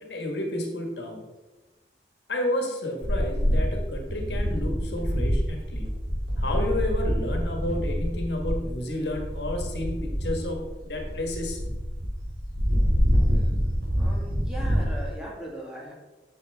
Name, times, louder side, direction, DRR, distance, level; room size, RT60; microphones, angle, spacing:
voice 1, 0.0-1.2 2.3-5.9 6.4-11.6, left 1 dB, 75° left, 3 dB, 1.5 m, -31 dB
sound 1, 3.0-15.1, equal, 75° right, 2.6 m, -26 dB
voice 2, 13.9-15.9, right 1 dB, 5° right, -4 dB, 1.6 m, -39 dB
9.0 x 6.3 x 3.5 m, 1.1 s
head